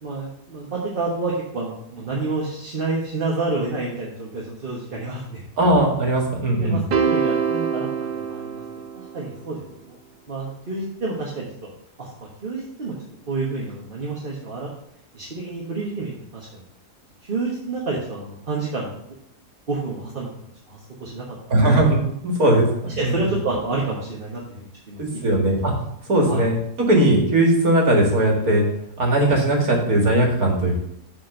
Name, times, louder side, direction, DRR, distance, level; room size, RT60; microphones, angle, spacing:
voice 1, 0.0-5.4 6.5-8.6 8.9-10.0 10.3-11.7 12.0-12.1 12.4-12.9 13.3-14.7 15.1-16.6 17.3-19.0 19.7-21.2 21.6-21.8 23.0-25.6 26.3-26.4, right 3 dB, 35° right, -4 dB, 1.4 m, -29 dB
voice 2, 5.6-6.8 21.5-23.1 25.0-25.7 26.1-26.6 26.9-28.6 29.0-30.8, right 1 dB, 60° right, -1 dB, 2.4 m, -19 dB
sound 1, 6.9-9.3, right 6 dB, 85° right, 1.5 m, -24 dB
7.4 x 4.3 x 6.5 m, 0.74 s
omnidirectional pair, 1.7 m